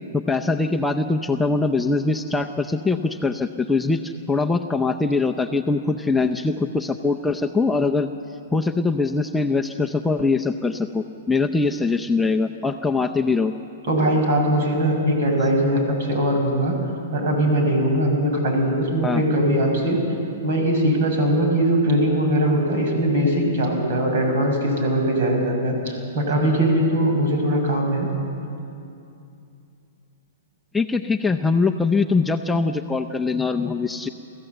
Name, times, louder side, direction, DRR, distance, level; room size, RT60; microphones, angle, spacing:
voice 1, 0.1-8.1 8.5-13.5 19.0-19.2 30.7-34.1, left 3 dB, 5° left, 3 dB, 0.6 m, -22 dB
voice 2, 13.9-16.8 17.1-20.0 20.4-28.1, right 1 dB, 60° right, 2 dB, 5.9 m, -21 dB
24.5 x 14.5 x 7.9 m, 2.6 s
hypercardioid pair, 140°, 0 cm